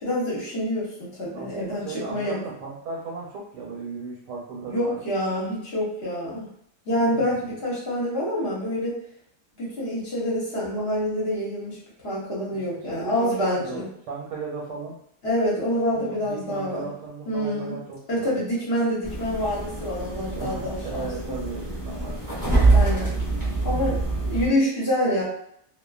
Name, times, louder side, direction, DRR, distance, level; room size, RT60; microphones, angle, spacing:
voice 1, 0.0-2.4 4.7-6.5 6.9-9.0 9.6-11.8 12.0-13.9 15.2-16.9 17.3-17.7 18.1-21.3 22.7-23.2 23.6-25.2, equal, 45° left, -6 dB, 0.9 m, -27 dB
voice 2, 1.3-5.0 7.1-7.4 12.5-15.0 15.9-18.4 20.3-22.5, right 4 dB, 85° right, -4 dB, 1.3 m, -36 dB
Refrigerator door opening and closing, 19.0-24.5, right 3 dB, 5° right, 0.8 m, -25 dB
2.6 x 2.4 x 2.3 m, 0.71 s
omnidirectional pair, 1.8 m